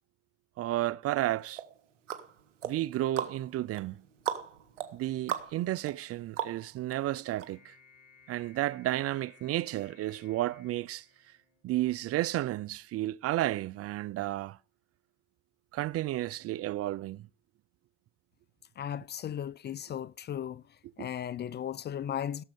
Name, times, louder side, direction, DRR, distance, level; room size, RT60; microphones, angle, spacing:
voice 1, 0.6-1.6 2.6-4.0 4.9-7.8 8.3-11.1 11.6-14.6 15.7-17.3 21.0-21.1, right 15 dB, 40° right, 0.5 m, -32 dB
sound 1, 1.6-6.9 7.4-7.5, right 10 dB, 90° right, 1.6 m, -38 dB
sound 2, 7.4-11.9, left 6 dB, 65° left, 5.5 m, -60 dB
voice 2, 18.8-20.6 21.0-22.4, left 9 dB, 30° left, 0.5 m, -36 dB
17.0 x 7.4 x 5.2 m
hypercardioid pair, 85°, 36 cm